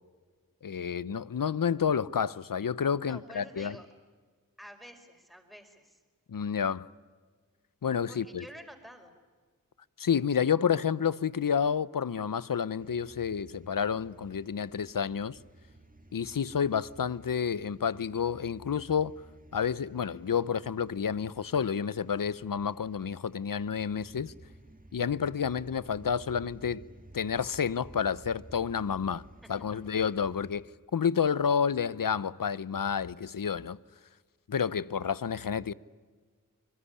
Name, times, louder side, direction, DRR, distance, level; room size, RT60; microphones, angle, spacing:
voice 1, 0.6-3.8 6.3-6.9 7.8-8.4 10.0-15.4 16.1-19.2 19.5-24.3 24.9-26.8 27.1-29.2 29.5-30.7 30.9-33.8 34.5-35.7, left 7 dB, 70° left, 0.8 m, -30 dB
voice 2, 3.0-3.9 4.6-6.0 8.1-9.1 29.7-29.8, equal, ahead, 5.2 m, -49 dB
sound 1, 12.8-30.6, right 1 dB, 25° right, 1.8 m, -54 dB
24.5 x 21.5 x 9.9 m
cardioid pair, 40°, 35 cm